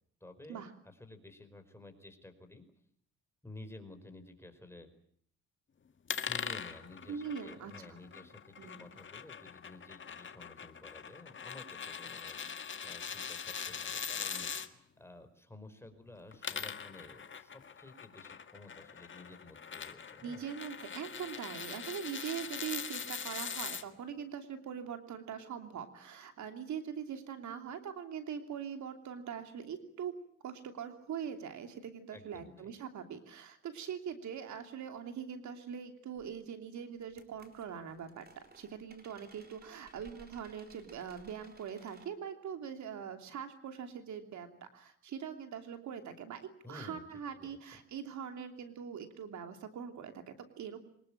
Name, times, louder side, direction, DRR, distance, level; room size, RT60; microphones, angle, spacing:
voice 1, 0.2-2.6 3.4-4.9 6.3-20.4 32.1-32.5 46.6-47.0 47.4-47.6, left 2 dB, 10° left, 6 dB, 4.8 m, -53 dB
sound 1, 6.1-14.7 16.2-23.8, left 6 dB, 40° left, 1.8 m, -42 dB
voice 2, 7.1-8.0 8.6-8.9 20.2-30.1 30.4-50.8, right 7 dB, 70° right, 7 dB, 3.0 m, -42 dB
sound 2, 36.2-36.3 37.0-42.1, right 4 dB, 30° right, 4.2 m, -60 dB
24.5 x 20.0 x 8.8 m, 0.66 s
cardioid pair, 90°, 30 cm